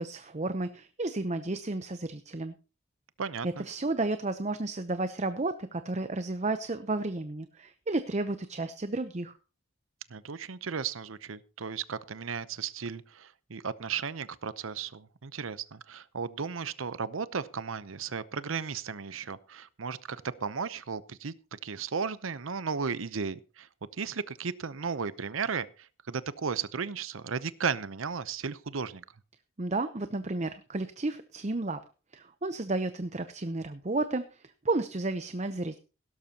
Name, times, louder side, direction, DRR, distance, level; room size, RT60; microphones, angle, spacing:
voice 1, 0.0-2.5 3.4-9.3 29.6-31.8 32.1-35.8, right 2 dB, 35° right, 10 dB, 0.8 m, -32 dB
voice 2, 3.2-3.6 10.1-23.7 24.0-29.0, right 5 dB, 90° right, 16 dB, 0.8 m, -35 dB
17.0 x 12.5 x 2.9 m, 0.33 s
head